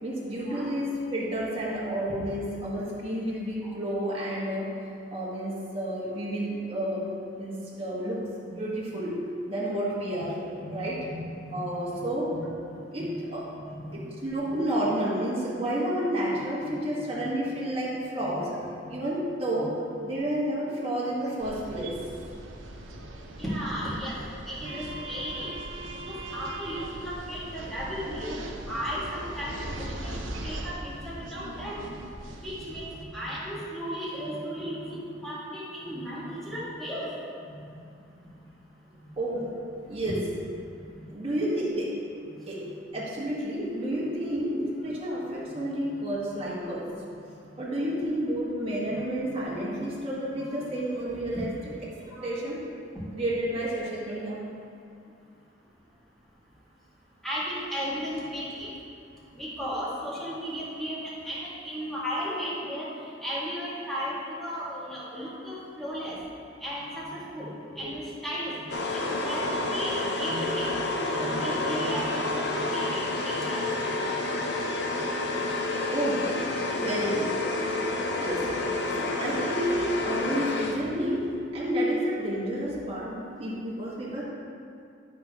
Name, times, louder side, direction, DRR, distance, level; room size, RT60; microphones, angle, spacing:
voice 1, 0.0-4.8 5.1-7.1 7.4-11.0 11.5-12.4 12.9-13.5 13.9-18.5 18.9-19.8 20.0-22.0 39.2-39.5 39.9-40.2 41.1-41.9 42.5-42.7 42.9-46.9 47.6-51.5 52.1-52.6 53.1-54.4 67.8-67.9 75.9-76.3 76.8-77.4 78.2-78.5 78.9-84.2, right 1 dB, 30° right, -7 dB, 1.8 m, -30 dB
voice 2, 10.6-11.6 12.4-12.5 13.7-14.0 14.5-14.6 23.4-24.2 24.5-25.5 26.1-28.3 28.7-30.1 30.4-31.8 32.4-37.1 52.2-52.3 57.2-58.7 59.4-61.0 61.2-62.9 63.2-66.2 66.6-67.5 67.8-68.5 68.9-73.7, equal, ahead, -9 dB, 2.1 m, -35 dB
sound 1, 21.4-33.0, right 1 dB, 85° right, 0.8 m, -40 dB
sound 2, 68.7-81.1, left 2 dB, 60° left, 0.8 m, -29 dB
12.5 x 6.2 x 3.1 m, 2.5 s
head